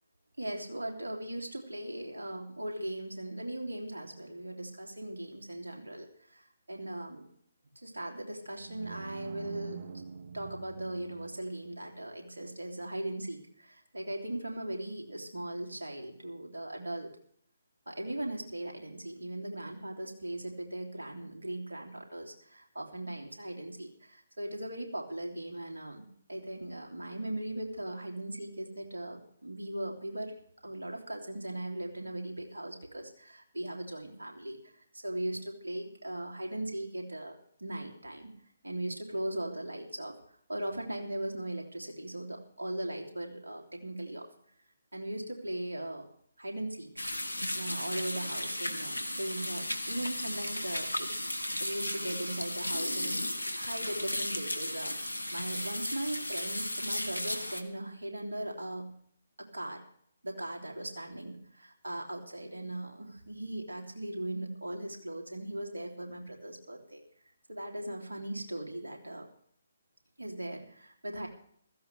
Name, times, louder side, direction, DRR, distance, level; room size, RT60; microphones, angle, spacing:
voice 1, 0.4-6.4 6.7-7.2 7.8-9.9 10.3-17.1 17.9-30.3 30.6-34.6 34.9-37.3 37.6-38.3 38.6-40.2 40.5-44.3 44.9-46.1 46.4-46.9 47.5-51.1 51.6-55.0 55.3-58.9 59.4-59.9 60.2-67.0 67.5-69.3 70.2-71.3, right 1 dB, 80° right, 1 dB, 3.0 m, -39 dB
sound 1, 8.3-11.5, right 5 dB, 50° right, 1.1 m, -45 dB
sound 2, 47.0-57.6, left 1 dB, 90° left, 1.4 m, -35 dB
16.0 x 15.0 x 3.4 m, 0.65 s
figure-of-eight pair, 135°, 0 cm